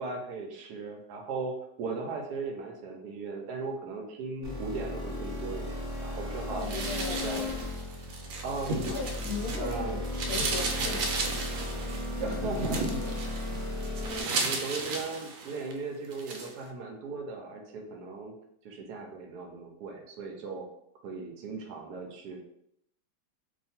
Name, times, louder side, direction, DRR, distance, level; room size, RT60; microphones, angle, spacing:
voice 1, 0.0-6.7 7.1-7.4 8.4-9.1 9.6-10.0 12.1-12.8 14.2-18.3 18.6-20.7 21.0-22.4, right 4 dB, 70° right, 3 dB, 1.1 m, -37 dB
sound 1, 4.4-14.2, left 1 dB, 15° right, 0.7 m, -35 dB
voice 2, 6.5-7.5 8.8-10.0 10.3-11.4 12.2-13.2, left 4 dB, 65° left, -1 dB, 1.0 m, -38 dB
sound 2, 6.6-9.7 10.0-15.7 16.1-16.5, right 3 dB, 85° right, 1.3 m, -34 dB
2.8 x 2.5 x 4.2 m, 0.74 s
omnidirectional pair, 2.1 m